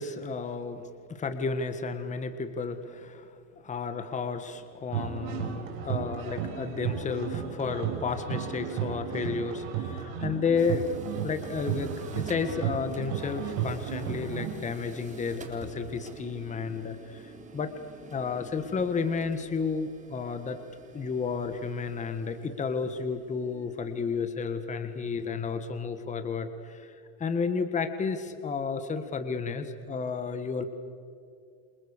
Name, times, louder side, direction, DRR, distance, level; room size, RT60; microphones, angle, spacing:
voice 1, 0.0-3.4 3.6-11.0 11.2-17.7 18.1-20.6 20.9-30.7, left 5 dB, 15° left, 9 dB, 1.7 m, -32 dB
sound 1, 4.9-14.5, right 9 dB, 50° right, 5.8 m, -34 dB
sound 2, 10.6-24.9, right 4 dB, 15° right, 3.6 m, -48 dB
29.0 x 27.0 x 6.8 m, 2.3 s
supercardioid pair, 135°, 41 cm